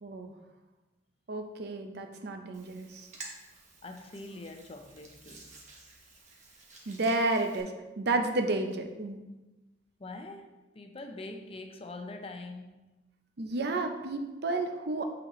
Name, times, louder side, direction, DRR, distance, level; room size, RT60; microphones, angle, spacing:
voice 1, 0.0-0.3 1.3-3.1 6.9-9.2 13.4-15.1, right 2 dB, 60° right, 5 dB, 0.6 m, -31 dB
Hands, 2.5-7.6, right 3 dB, 40° right, 1.1 m, -51 dB
voice 2, 3.8-5.5 10.0-12.8, left 2 dB, 30° left, 5 dB, 0.5 m, -44 dB
8.1 x 4.2 x 3.1 m, 1.1 s
head